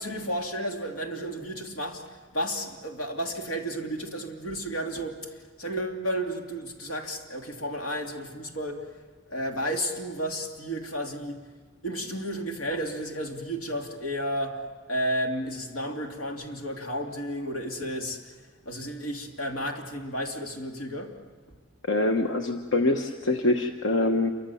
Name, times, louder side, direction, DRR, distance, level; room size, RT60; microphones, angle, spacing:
voice 1, 0.0-2.0 2.3-5.2 5.6-8.8 9.3-11.4 11.8-18.2 18.6-21.2, equal, 90° left, 2.8 m, -32 dB
voice 2, 21.9-24.3, left 2 dB, 65° left, 1.1 m, -24 dB
28.0 x 24.0 x 7.1 m
head